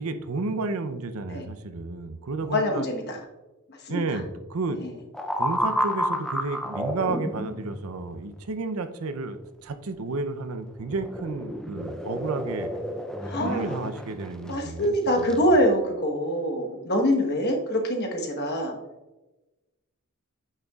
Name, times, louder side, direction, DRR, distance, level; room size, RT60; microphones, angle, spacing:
voice 1, 0.0-2.8 3.9-4.8 5.3-12.7 13.4-15.4, right 3 dB, 80° right, 10 dB, 0.6 m, -32 dB
voice 2, 2.4-3.2 3.7-4.2 4.8-4.9 13.2-13.8 14.5-18.8, equal, 50° left, 2 dB, 1.1 m, -25 dB
sound 1, 5.1-7.8 10.7-14.6 15.2-15.4, equal, 5° left, 0.4 m, -31 dB
8.7 x 6.5 x 2.3 m, 1.1 s
head